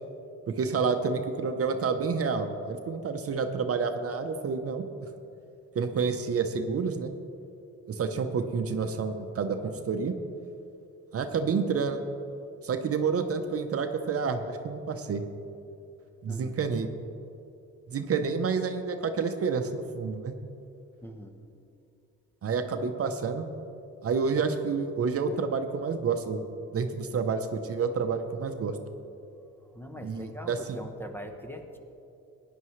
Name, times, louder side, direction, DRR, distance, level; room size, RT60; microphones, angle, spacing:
voice 1, 0.5-4.8 5.7-7.1 7.9-10.1 11.1-12.0 12.6-15.2 16.2-16.9 17.9-20.4 22.4-23.4 24.0-26.5 26.7-28.8 30.0-30.6, right 5 dB, 50° right, 6 dB, 0.8 m, -29 dB
voice 2, 16.3-16.6 21.0-21.4 29.6-31.8, equal, 5° left, 5 dB, 1.0 m, -42 dB
16.0 x 10.5 x 3.2 m, 2.7 s
cardioid pair, 90°, 30 cm